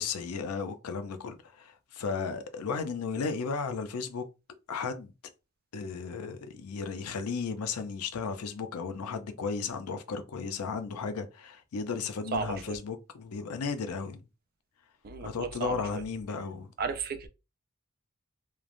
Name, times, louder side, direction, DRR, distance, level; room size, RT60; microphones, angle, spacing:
voice 1, 0.0-4.2 4.7-5.1 5.7-14.2 15.2-16.7, left 5 dB, 80° left, 0.5 m, -34 dB
voice 2, 12.3-12.8 15.0-15.9 16.8-17.3, right 5 dB, 40° right, 0.3 m, -34 dB
3.1 x 2.0 x 2.4 m
head